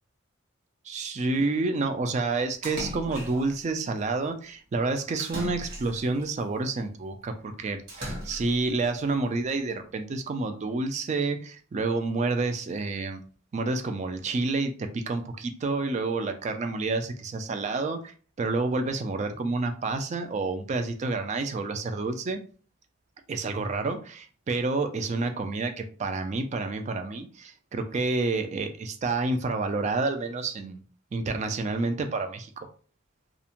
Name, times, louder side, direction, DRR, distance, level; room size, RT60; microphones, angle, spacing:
voice 1, 0.9-13.2 13.5-18.1 18.4-22.4 23.3-30.8 31.1-32.7, right 3 dB, 35° right, 6 dB, 0.3 m, -29 dB
Splash splatter, 2.6-3.6 5.2-6.3 7.9-8.7, equal, 55° right, 1.1 m, -37 dB
2.5 x 2.1 x 2.8 m, 0.40 s
head